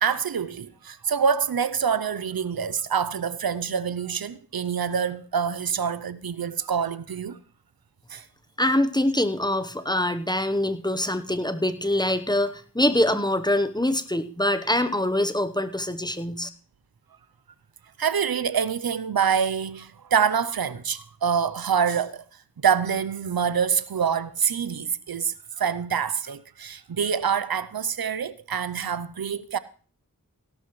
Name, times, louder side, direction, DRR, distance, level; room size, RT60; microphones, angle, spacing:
voice 1, 0.0-7.4 8.1-8.2 18.0-22.2 22.6-29.6, right 7 dB, 85° right, 0.6 m, -26 dB
voice 2, 8.6-16.5, left 1 dB, 10° left, 1.0 m, -24 dB
17.5 x 12.0 x 3.1 m
wide cardioid pair, 40°, 35 cm